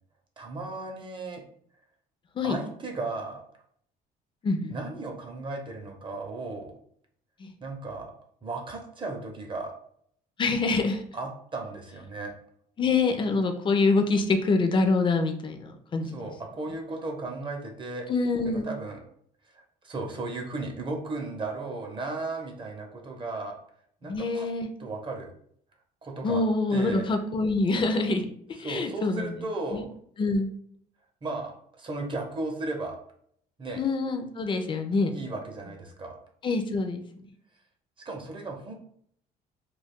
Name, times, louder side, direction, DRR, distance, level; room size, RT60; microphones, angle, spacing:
voice 1, 0.4-1.4 2.4-3.4 4.7-6.7 7.6-8.1 8.4-9.7 11.1-12.3 16.0-18.1 18.5-19.0 19.5-23.6 24.0-24.5 24.8-25.3 26.0-26.4 26.7-27.1 28.6-29.9 31.2-33.0 33.6-33.8 35.1-36.2 38.0-38.7, right 2 dB, 30° right, 2 dB, 0.7 m, -35 dB
voice 2, 4.4-4.7 7.4-7.5 10.4-11.0 12.8-16.3 18.1-18.7 24.0-24.7 26.2-28.3 28.6-29.3 29.7-29.8 30.2-30.5 33.8-35.1 36.4-37.3, left 3 dB, 30° left, 5 dB, 0.4 m, -25 dB
2.3 x 2.3 x 3.6 m, 0.65 s
cardioid pair, 110°, 17 cm